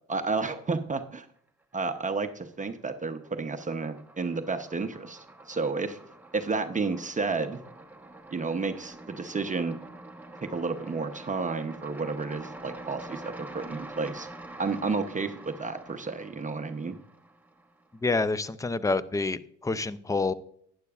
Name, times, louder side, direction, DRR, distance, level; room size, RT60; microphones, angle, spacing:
voice 1, 0.1-1.3 1.7-6.0 6.3-7.6 8.3-9.8 10.5-14.3 14.6-17.0, right 4 dB, 25° right, 7 dB, 0.8 m, -31 dB
sound 1, 1.7-2.5 2.8-17.9, right 2 dB, 5° right, 1.1 m, -46 dB
voice 2, 18.0-20.3, left 3 dB, 10° left, 15 dB, 0.5 m, -27 dB
11.5 x 9.5 x 2.4 m, 0.65 s
cardioid pair, 90°, 30 cm